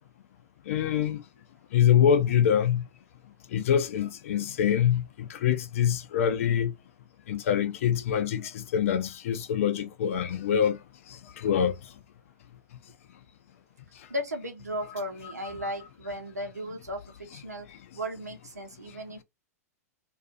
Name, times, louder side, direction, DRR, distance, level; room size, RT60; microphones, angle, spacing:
voice 1, 0.7-1.2 1.7-2.8 3.5-6.7 7.3-10.8 11.4-11.7, left 9 dB, 55° left, 0.5 m, -25 dB
voice 2, 14.1-17.7 17.9-19.2, equal, 85° right, 1.0 m, -36 dB
2.6 x 2.4 x 2.5 m
figure-of-eight pair, 105°, 9 cm